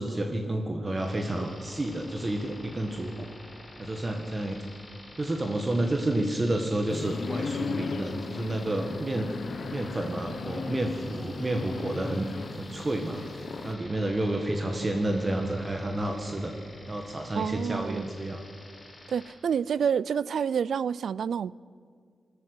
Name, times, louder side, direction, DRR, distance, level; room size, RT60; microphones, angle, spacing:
voice 1, 0.0-3.3 3.8-4.6 5.2-9.3 9.7-12.3 12.6-13.3 13.6-16.5 16.9-18.4, right 1 dB, 25° right, 1.7 m, -30 dB
sound 1, 1.0-19.3, left 2 dB, 25° left, 5.1 m, -49 dB
sound 2, 6.9-13.7, left 4 dB, 60° left, 1.2 m, -36 dB
voice 2, 17.3-18.0 19.1-21.5, right 7 dB, 75° right, 0.4 m, -28 dB
20.0 x 13.5 x 9.7 m
wide cardioid pair, 115°, 0 cm